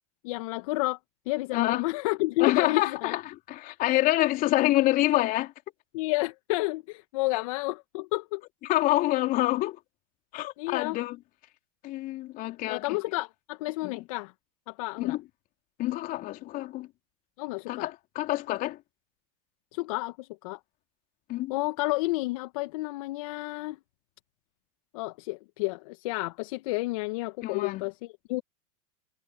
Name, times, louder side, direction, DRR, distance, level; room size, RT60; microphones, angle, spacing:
voice 1, 0.2-1.0 1.3-3.2 5.9-8.4 10.6-11.0 12.7-14.3 14.7-15.2 17.4-17.9 19.7-20.6 21.5-23.8 24.9-28.4, left 22 dB, 65° left, 1.8 m, -30 dB
voice 2, 1.5-1.9 2.4-3.2 3.5-5.5 8.6-9.8 10.3-11.2 11.8-12.8 13.8-14.0 15.0-15.2 15.8-16.9 17.7-18.8 21.3-21.5 27.4-27.8, left 17 dB, 50° left, 3.7 m, -27 dB
hypercardioid pair, 90°, 19 cm